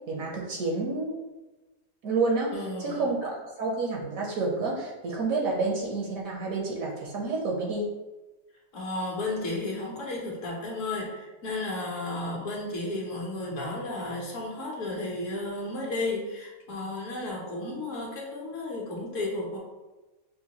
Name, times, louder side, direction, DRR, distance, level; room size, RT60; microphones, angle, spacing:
voice 1, 0.1-1.1 2.0-2.5 2.8-7.8, right 3 dB, 75° right, -1 dB, 1.1 m, -29 dB
voice 2, 2.5-3.1 8.7-19.6, left 2 dB, 65° left, -3 dB, 1.4 m, -33 dB
6.5 x 2.2 x 2.9 m, 1.1 s
omnidirectional pair, 1.5 m